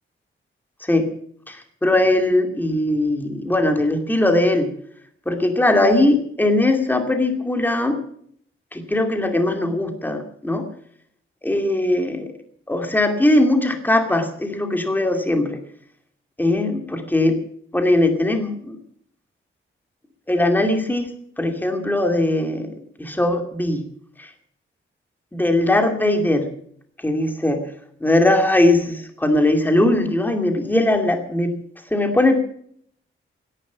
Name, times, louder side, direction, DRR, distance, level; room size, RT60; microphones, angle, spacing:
voice 1, 1.5-4.7 5.3-8.0 8.7-10.6 11.4-12.3 12.7-15.6 16.4-17.4 17.7-18.8 20.3-21.1 21.4-22.7 23.0-23.8 24.2-24.3 25.3-26.5 27.0-27.6 28.0-31.6 31.9-32.4, left 1 dB, 10° left, 6 dB, 2.4 m, -20 dB
17.0 x 11.0 x 7.2 m, 0.63 s
wide cardioid pair, 155°, 21 cm